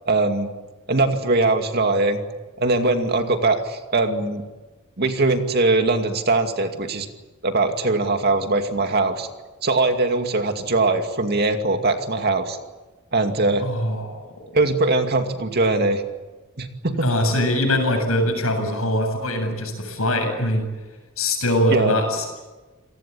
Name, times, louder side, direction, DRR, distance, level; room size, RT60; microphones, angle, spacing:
voice 1, 0.0-0.5 0.9-2.2 2.6-4.4 5.0-7.1 7.4-9.3 9.6-12.6 13.1-13.6 14.5-16.0 16.6-17.1 21.7-21.9, right 2 dB, 50° right, 5 dB, 2.4 m, -21 dB
voice 2, 13.6-14.2 17.0-20.7 21.2-22.2, left 1 dB, 75° left, 5 dB, 8.0 m, -22 dB
28.0 x 19.0 x 8.7 m, 1.2 s
head